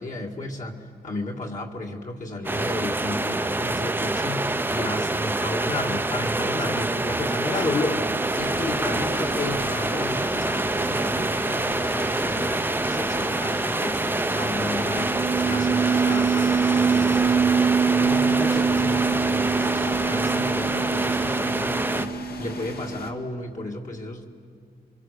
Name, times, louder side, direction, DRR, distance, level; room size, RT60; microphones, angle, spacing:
voice 1, 0.0-15.1 15.4-22.1 22.4-24.3, left 2 dB, 50° left, 0 dB, 2.0 m, -33 dB
sound 1, 2.4-22.1, right 2 dB, 10° right, 0.6 m, -26 dB
sound 2, 6.7-7.9 14.7-23.4, right 6 dB, 65° right, 1.2 m, -25 dB
sound 3, 8.3-23.1, left 4 dB, 70° left, 1.9 m, -38 dB
30.0 x 24.5 x 6.7 m, 2.3 s
wide cardioid pair, 155°, 16 cm